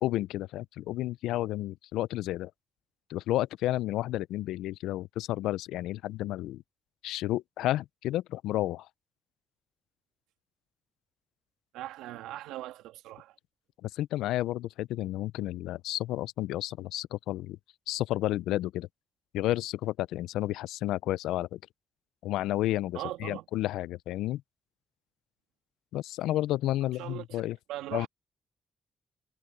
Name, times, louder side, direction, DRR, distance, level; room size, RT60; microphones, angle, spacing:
voice 1, 0.0-2.5 3.1-6.6 7.0-8.9 13.8-17.6 17.9-18.9 19.3-21.6 22.2-24.4 25.9-27.6 27.9-28.1, left 15 dB, 85° left, 0.4 m, -31 dB
voice 2, 11.7-13.3 22.9-23.4 27.0-27.2 27.7-28.1, right 15 dB, 85° right, 2.7 m, -39 dB
hypercardioid pair, 40°, 0 cm